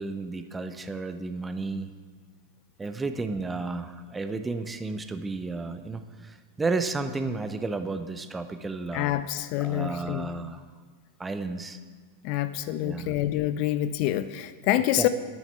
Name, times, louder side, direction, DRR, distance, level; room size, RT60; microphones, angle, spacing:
voice 1, 0.0-1.9 2.8-9.1 9.6-10.6 11.2-11.8 12.8-13.1 15.0-15.1, right 3 dB, 15° right, 9 dB, 0.5 m, -32 dB
voice 2, 8.9-10.3 12.2-15.1, left 13 dB, 45° left, 13 dB, 0.3 m, -27 dB
9.9 x 8.6 x 4.5 m, 1.5 s
figure-of-eight pair, 90°, 0 cm